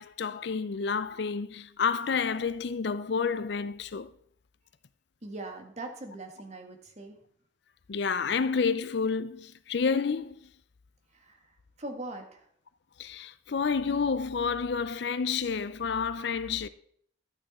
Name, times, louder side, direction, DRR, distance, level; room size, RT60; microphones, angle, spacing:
voice 1, 0.0-4.1 7.9-10.4 13.0-16.7, left 5 dB, 60° left, 0.5 m, -29 dB
voice 2, 5.2-7.2 11.1-11.4 11.8-12.5, right 2 dB, 35° right, 1.7 m, -41 dB
12.5 x 8.7 x 4.2 m
head